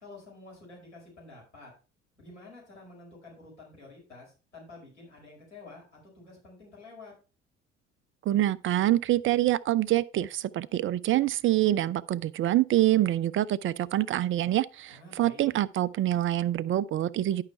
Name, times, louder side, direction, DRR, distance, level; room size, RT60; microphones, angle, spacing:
voice 1, 0.0-1.7 2.2-5.8 6.1-7.1 14.9-15.5, left 2 dB, 90° left, 5.0 m, -49 dB
voice 2, 8.3-17.4, right 14 dB, 35° right, 0.6 m, -26 dB
11.5 x 5.7 x 4.4 m
figure-of-eight pair, 55°, 35 cm